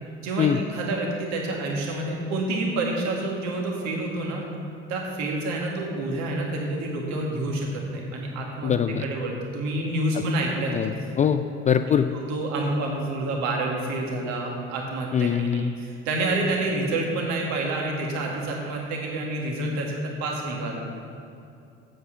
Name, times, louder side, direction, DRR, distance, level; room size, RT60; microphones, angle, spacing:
voice 1, 0.2-4.4 4.9-8.7 9.0-10.9 11.8-20.9, right 2 dB, 55° right, -1 dB, 2.0 m, -28 dB
voice 2, 8.6-9.1 10.7-10.9 11.2-12.1 15.1-15.7, left 8 dB, 25° left, 10 dB, 0.4 m, -22 dB
9.1 x 7.9 x 5.8 m, 2.6 s
figure-of-eight pair, 55°, 33 cm